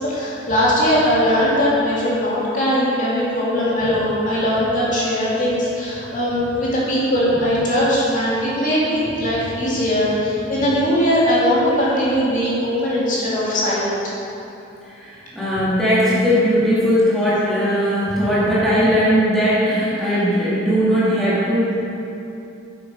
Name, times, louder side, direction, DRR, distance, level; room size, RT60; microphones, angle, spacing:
voice 1, 0.0-14.1 18.1-18.2, equal, 40° left, -7 dB, 2.2 m, -20 dB
voice 2, 15.0-21.8, equal, ahead, -10 dB, 2.1 m, -18 dB
9.0 x 7.7 x 5.3 m, 2.8 s
head